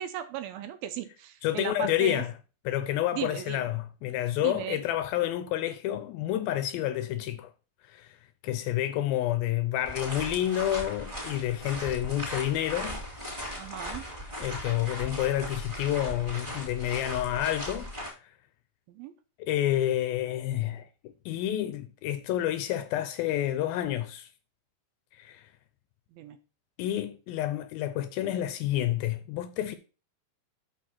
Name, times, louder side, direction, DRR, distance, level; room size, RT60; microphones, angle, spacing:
voice 1, 0.0-2.2 3.1-3.7 4.4-4.8 13.5-14.1 18.9-19.1 26.1-26.4, right 11 dB, 80° right, 2.5 m, -37 dB
voice 2, 1.4-2.3 2.7-7.5 7.9-8.2 8.4-13.0 14.4-17.9 18.2-18.3 19.4-24.3 25.1-25.5 26.8-29.8, left 12 dB, 80° left, 2.2 m, -29 dB
sound 1, 9.8-18.1, equal, 10° right, 2.8 m, -38 dB
6.5 x 6.1 x 5.9 m
omnidirectional pair, 4.6 m